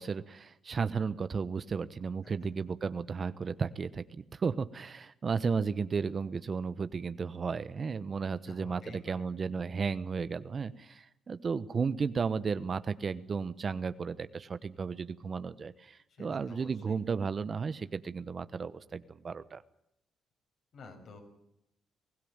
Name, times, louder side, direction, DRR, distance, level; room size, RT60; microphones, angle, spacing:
voice 1, 0.0-19.6, right 5 dB, 40° right, 14 dB, 1.1 m, -34 dB
voice 2, 8.4-9.3 16.1-17.0 20.7-21.2, left 4 dB, 60° left, 3 dB, 7.1 m, -50 dB
22.5 x 16.0 x 8.9 m, 0.81 s
cardioid pair, 90°, 0 cm